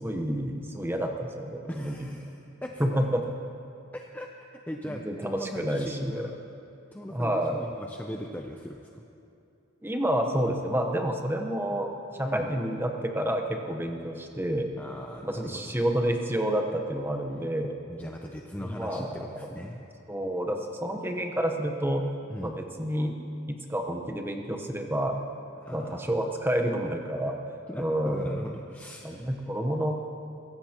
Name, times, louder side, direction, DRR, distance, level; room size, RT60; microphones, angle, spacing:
voice 1, 0.0-1.9 2.8-3.2 4.9-6.3 7.1-7.7 9.8-14.7 15.2-17.8 18.6-19.1 20.1-22.0 22.4-23.1 23.7-25.2 25.7-27.4 27.8-28.3 29.0-30.0, right 1 dB, 10° right, 3 dB, 0.9 m, -29 dB
voice 2, 1.7-3.1 3.9-6.4 6.9-9.0 12.2-12.5 14.8-15.7 17.9-19.8 22.3-22.6 25.6-26.1 27.7-29.5, left 1 dB, 10° left, 2 dB, 0.5 m, -40 dB
22.5 x 16.0 x 2.9 m, 2.7 s
head